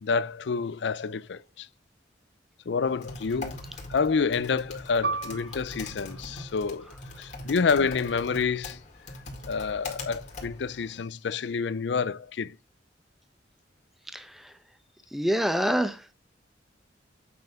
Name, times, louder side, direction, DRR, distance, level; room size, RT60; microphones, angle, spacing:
voice 1, 0.0-1.7 2.7-3.6 3.9-6.9 7.2-8.8 9.5-12.6, left 5 dB, 75° left, 0.5 m, -28 dB
Typing, 2.8-11.0, left 2 dB, 40° left, 2.0 m, -42 dB
Piano, 5.0-10.1 10.4-10.6 11.3-11.7, right 4 dB, 70° right, 0.8 m, -38 dB
voice 2, 14.1-14.5 15.1-16.1, equal, ahead, 0.8 m, -27 dB
7.8 x 5.5 x 3.5 m
head